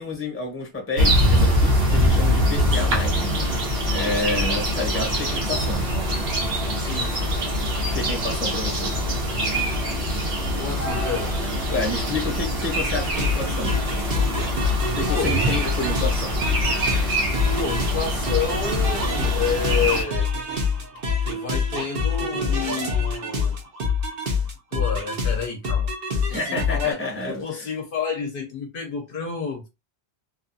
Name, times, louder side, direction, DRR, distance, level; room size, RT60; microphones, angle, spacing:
voice 1, 0.0-3.6 3.9-5.8 7.9-8.9 11.7-13.7 14.9-16.4 26.3-27.7, left 3 dB, 15° left, 0.7 m, -29 dB
sound 1, 1.0-20.0, equal, 85° right, 1.3 m, -23 dB
voice 2, 6.8-7.6 10.6-11.4 15.1-15.4 17.5-20.3 21.2-23.6 24.7-29.7, left 6 dB, 65° left, 0.8 m, -30 dB
sound 2, 13.1-26.9, left 4 dB, 65° right, 1.0 m, -25 dB
2.8 x 2.2 x 2.6 m
omnidirectional pair, 1.0 m